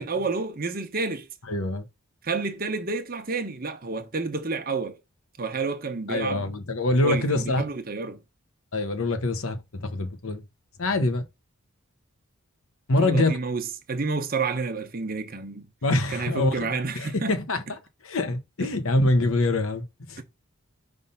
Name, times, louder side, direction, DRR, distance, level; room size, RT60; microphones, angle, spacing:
voice 1, 0.0-1.3 2.2-5.0 5.4-6.5 7.0-8.2 13.0-15.7 16.1-17.3 20.2-20.3, right 4 dB, 40° right, 1.0 m, -30 dB
voice 2, 1.5-1.8 6.1-7.7 8.7-10.4 10.8-11.3 12.9-13.3 15.8-16.7 16.9-17.8 18.0-20.2, left 2 dB, 70° left, 1.0 m, -25 dB
5.5 x 3.5 x 5.5 m
head